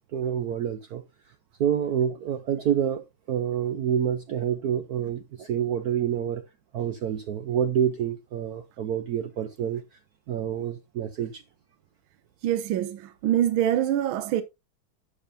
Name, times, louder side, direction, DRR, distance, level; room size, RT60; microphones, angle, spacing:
voice 1, 0.1-1.0 1.6-6.4 6.7-10.0 10.3-11.4, right 9 dB, 65° right, 1.0 m, -28 dB
voice 2, 12.4-14.4, right 11 dB, 80° right, 1.6 m, -25 dB
11.5 x 7.2 x 2.6 m
omnidirectional pair, 2.2 m